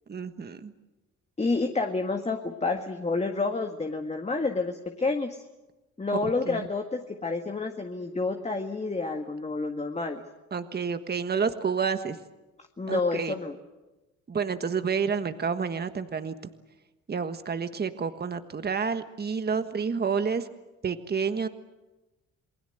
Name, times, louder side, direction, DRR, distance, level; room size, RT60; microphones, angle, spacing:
voice 1, 0.1-0.7 6.1-6.7 10.5-12.2 12.9-13.4 14.3-16.3 17.1-20.5 20.8-21.5, right 6 dB, 35° right, 9 dB, 1.5 m, -29 dB
voice 2, 1.4-5.4 6.0-10.2 12.8-13.5, left 3 dB, 20° left, 4 dB, 1.8 m, -29 dB
28.5 x 20.0 x 8.0 m, 1.1 s
cardioid pair, 90°, 30 cm